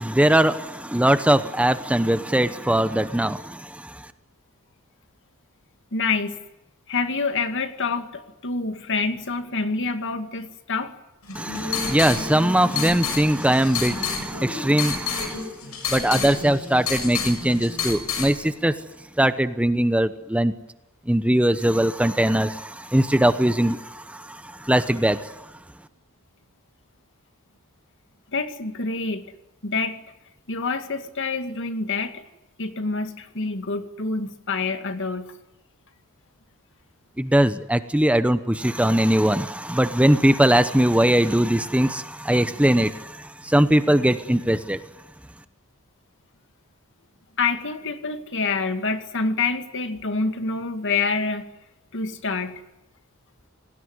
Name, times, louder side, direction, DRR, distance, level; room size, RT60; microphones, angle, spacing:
voice 1, 0.0-4.1 11.3-15.5 15.9-18.7 19.2-20.5 21.1-25.5 37.2-44.8, right 1 dB, 5° right, 11 dB, 0.9 m, -21 dB
voice 2, 5.9-6.4 6.9-10.9 28.3-29.2 29.6-30.0 30.5-32.2 32.6-35.3 47.4-51.4 51.9-52.6, left 4 dB, 60° left, 8 dB, 2.3 m, -27 dB
sound 1, 11.2-18.3, left 5 dB, 80° left, 6.9 m, -30 dB
27.5 x 19.5 x 9.7 m, 0.97 s
head